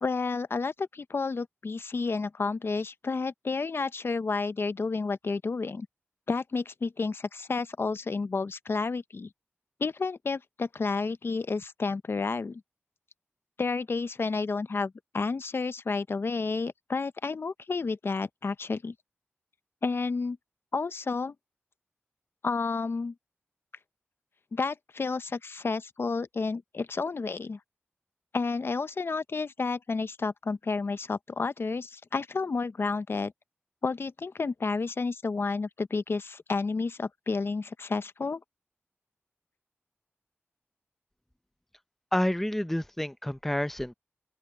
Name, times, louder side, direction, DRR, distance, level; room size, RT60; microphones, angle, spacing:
voice 1, 0.0-5.9 6.3-9.3 9.8-12.6 13.6-18.9 19.8-20.4 20.7-21.3 22.4-23.1 24.5-27.6 28.3-33.3 33.8-38.4, left 4 dB, 60° left, 0.6 m, -31 dB
voice 2, 42.1-43.9, left 1 dB, 5° left, 0.5 m, -29 dB
open air
wide cardioid pair, 95°, 4 cm